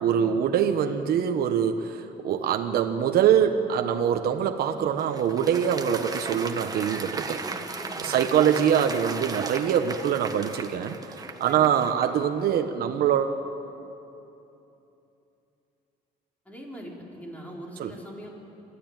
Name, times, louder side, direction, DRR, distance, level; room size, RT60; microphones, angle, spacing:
voice 1, 0.0-7.4 8.0-13.4 17.8-17.9, right 8 dB, 65° right, 6 dB, 1.3 m, -24 dB
Applause, 4.6-12.2, right 4 dB, 20° right, 1.5 m, -36 dB
voice 2, 7.3-8.5 11.5-11.7 16.4-18.3, equal, 10° left, -2 dB, 4.7 m, -42 dB
27.0 x 13.5 x 9.1 m, 2.9 s
cardioid pair, 110°, 17 cm